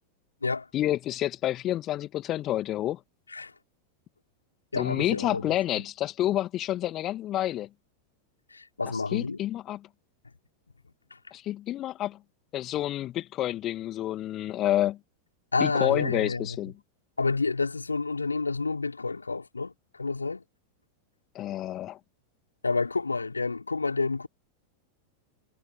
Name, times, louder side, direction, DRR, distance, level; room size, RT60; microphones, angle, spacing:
voice 1, 0.7-3.0 4.7-7.7 9.1-9.8 11.3-12.2 12.5-15.0 15.6-16.7 21.3-22.0, left 13 dB, 35° left, 2.1 m, -29 dB
voice 2, 4.7-5.4 8.5-9.4 15.5-16.6 17.2-19.7 20.0-20.4 22.6-24.3, left 3 dB, 80° left, 3.5 m, -29 dB
figure-of-eight pair, 90°, 0 cm